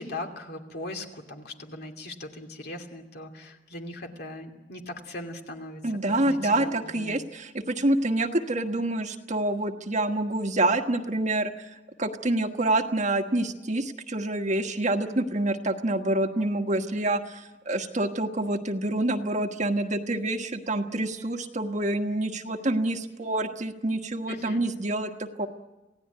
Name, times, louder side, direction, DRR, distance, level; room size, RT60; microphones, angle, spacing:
voice 1, 0.0-5.8 6.1-7.2 24.3-24.6, left 2 dB, 60° left, 3 dB, 2.7 m, -39 dB
voice 2, 5.8-25.5, right 2 dB, 40° right, 5 dB, 1.4 m, -27 dB
27.5 x 17.0 x 9.5 m, 1.1 s
head